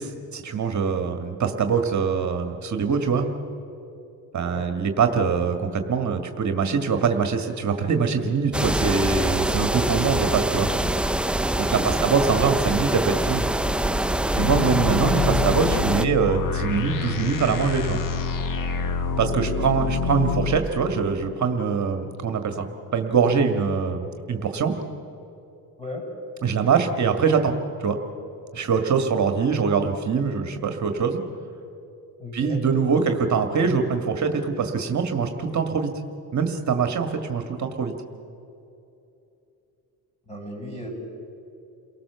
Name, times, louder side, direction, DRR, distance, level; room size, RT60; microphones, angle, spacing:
voice 1, 0.0-3.3 4.3-10.7 11.6-13.4 14.3-18.0 19.2-22.7 22.9-24.8 26.4-28.0 28.5-31.2 32.3-35.9 36.3-37.9, right 5 dB, 45° right, 6 dB, 1.8 m, -23 dB
sound 1, 8.5-16.0, right 1 dB, 5° right, 0.5 m, -24 dB
voice 2, 11.7-12.0 14.8-14.9 19.4-19.8 25.8-26.0 32.2-32.6 40.3-40.9, left 1 dB, 15° left, 1 dB, 7.9 m, -37 dB
sound 2, 14.4-20.6, left 4 dB, 55° left, 1.6 m, -26 dB
29.0 x 18.5 x 6.9 m, 2.8 s
cardioid pair, 105°, 39 cm